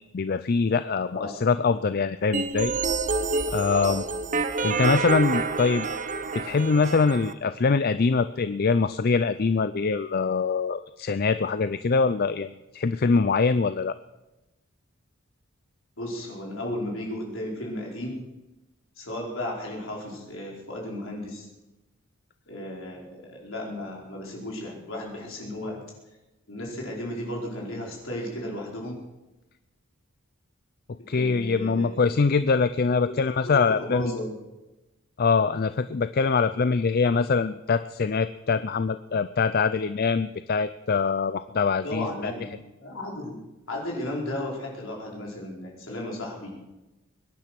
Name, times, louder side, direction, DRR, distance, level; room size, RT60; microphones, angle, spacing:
voice 1, 0.1-2.7 3.5-4.0 4.6-5.9 6.4-13.9 31.1-34.1 35.2-42.3, left 4 dB, 45° left, 12 dB, 0.4 m, -24 dB
voice 2, 1.1-1.4 3.7-4.1 16.0-18.2 19.0-21.5 22.5-25.8 26.5-29.0 31.0-32.0 33.0-34.3 41.8-43.4 43.7-46.5, left 1 dB, 65° left, -2 dB, 5.0 m, -34 dB
sound 1, 2.3-7.3, right 4 dB, 35° right, 0.8 m, -28 dB
22.5 x 10.5 x 6.0 m, 1.0 s
head